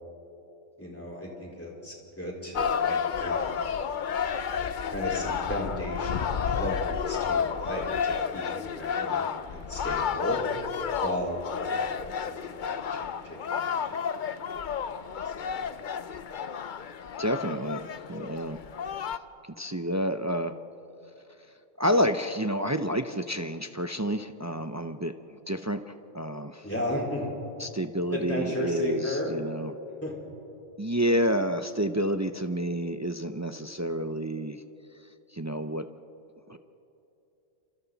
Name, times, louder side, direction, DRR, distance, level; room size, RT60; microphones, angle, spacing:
voice 1, 0.8-3.6 4.9-10.4 11.0-14.1 15.2-15.5 26.6-27.3 28.1-29.3 30.0-30.2, left 1 dB, 10° left, -2 dB, 4.4 m, -34 dB
sound 1, 2.6-19.2, left 7 dB, 50° left, 0.7 m, -31 dB
voice 2, 17.2-18.6 19.6-20.5 21.8-25.1 25.5-26.7 27.6-29.7 30.8-34.6 35.3-35.9 36.5-36.6, equal, 25° right, 8 dB, 0.4 m, -29 dB
28.5 x 27.0 x 4.1 m, 2.8 s
omnidirectional pair, 1.3 m